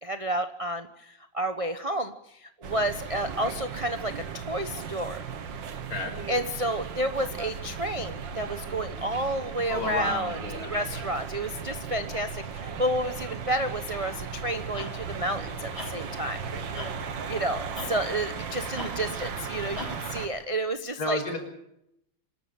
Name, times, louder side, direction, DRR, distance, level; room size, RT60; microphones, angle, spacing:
voice 1, 0.0-5.2 6.3-16.4 17.3-21.2, right 1 dB, 35° right, 8 dB, 0.5 m, -31 dB
sound 1, 2.6-20.3, right 6 dB, 60° right, 2.0 m, -36 dB
voice 2, 9.7-11.0 21.0-21.4, left 2 dB, 45° left, 3 dB, 6.0 m, -32 dB
sound 2, 14.0-20.5, left 2 dB, 25° left, 2.6 m, -51 dB
sound 3, 14.7-15.0 15.7-16.0 16.7-17.0 17.7-18.0 18.7-19.0 19.7-20.0 20.7-20.8, left 2 dB, 70° left, 5.9 m, -39 dB
26.0 x 13.0 x 8.9 m, 0.79 s
omnidirectional pair, 2.4 m